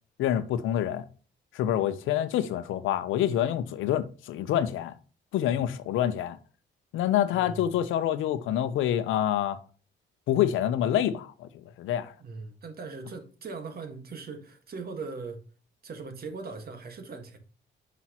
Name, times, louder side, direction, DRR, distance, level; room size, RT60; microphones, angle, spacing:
voice 1, 0.2-1.1 1.5-4.9 5.3-6.4 6.9-9.6 10.3-12.1, left 11 dB, 85° left, 0.7 m, -27 dB
voice 2, 7.3-7.7 12.2-15.4 15.8-17.4, right 4 dB, 50° right, 1.6 m, -40 dB
5.9 x 5.8 x 2.9 m
cardioid pair, 90°, 20 cm